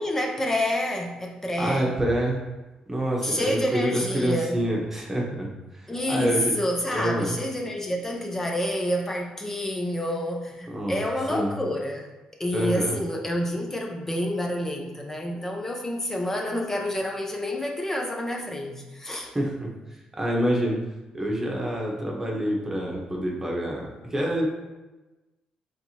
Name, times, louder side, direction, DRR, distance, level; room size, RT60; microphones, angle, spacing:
voice 1, 0.0-2.0 3.2-4.7 5.9-12.1 12.4-19.3, left 1 dB, 15° left, 1 dB, 0.6 m, -28 dB
voice 2, 1.6-2.4 2.9-6.5 6.9-7.4 10.7-11.0 11.3-11.5 12.5-13.0 19.2-19.7 20.1-20.8 21.1-24.4, right 1 dB, 15° right, -2 dB, 1.0 m, -27 dB
4.7 x 3.4 x 2.8 m, 1.1 s
cardioid pair, 100°, 2 cm